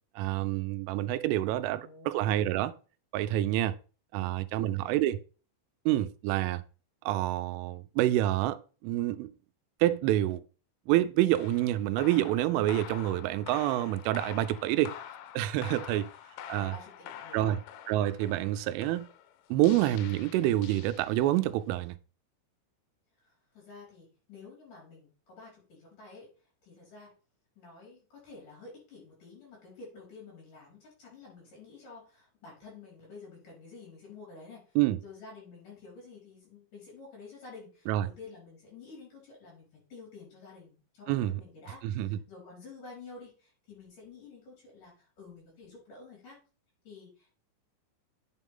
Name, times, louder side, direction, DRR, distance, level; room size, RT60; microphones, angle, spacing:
voice 1, 0.2-2.7 3.1-3.8 4.1-5.2 5.9-6.6 7.1-8.6 8.8-9.3 9.8-10.4 10.9-14.9 15.3-16.1 16.5-16.7 17.3-17.6 17.9-19.1 19.5-22.0 34.8-35.0 37.9-38.1 41.1-41.3 41.8-42.2, right 14 dB, 85° right, 3.1 m, -27 dB
voice 2, 1.7-2.2 4.1-5.2 16.5-17.5 23.2-26.3 26.6-27.1 27.6-46.4 46.8-47.4, left 4 dB, 45° left, 5.9 m, -50 dB
sound 1, 11.3-21.5, left 10 dB, 85° left, 3.0 m, -47 dB
9.1 x 5.7 x 3.7 m
omnidirectional pair, 5.6 m